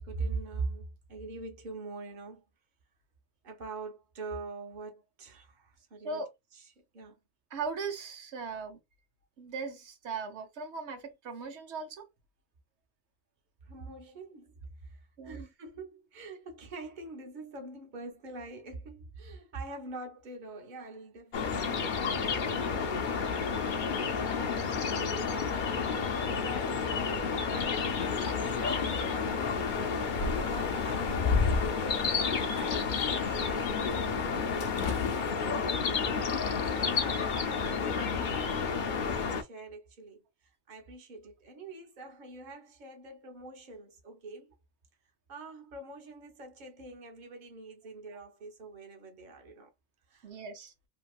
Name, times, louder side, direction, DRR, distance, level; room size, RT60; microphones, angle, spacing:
voice 1, 0.0-2.4 3.4-6.2 6.5-7.2 13.6-34.5 35.8-44.5 45.3-49.7 50.1-50.3, right 3 dB, 45° right, 1.0 m, -44 dB
voice 2, 7.5-8.8 9.4-12.1 15.2-15.5 50.2-50.7, right 4 dB, 90° right, 1.1 m, -38 dB
sound 1, 21.3-39.4, left 5 dB, 55° left, 0.7 m, -30 dB
sound 2, 27.9-35.3, left 6 dB, 80° left, 0.9 m, -44 dB
2.9 x 2.8 x 2.3 m
omnidirectional pair, 1.1 m